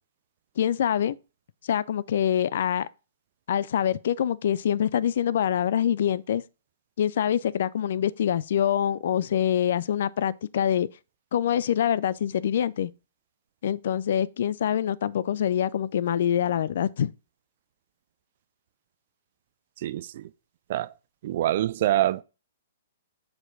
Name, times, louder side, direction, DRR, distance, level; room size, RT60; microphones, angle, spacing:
voice 1, 0.6-1.2 1.7-2.9 3.5-6.4 7.0-10.9 11.3-12.9 13.6-17.1, left 9 dB, 60° left, 0.4 m, -25 dB
voice 2, 19.8-20.3 20.7-20.9 21.2-22.2, right 13 dB, 50° right, 0.4 m, -25 dB
7.7 x 4.6 x 4.0 m
figure-of-eight pair, 120°, 0 cm